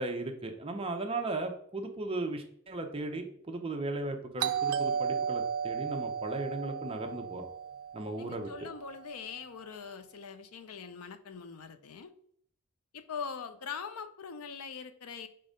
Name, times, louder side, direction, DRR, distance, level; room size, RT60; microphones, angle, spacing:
voice 1, 0.0-7.5 7.9-8.5, right 2 dB, 25° right, 4 dB, 0.8 m, -36 dB
Doorbell, 4.4-9.0, right 7 dB, 75° right, 0.5 m, -34 dB
voice 2, 8.2-12.1 12.9-15.3, left 6 dB, 90° left, 10 dB, 0.6 m, -42 dB
5.4 x 3.8 x 5.1 m, 0.65 s
head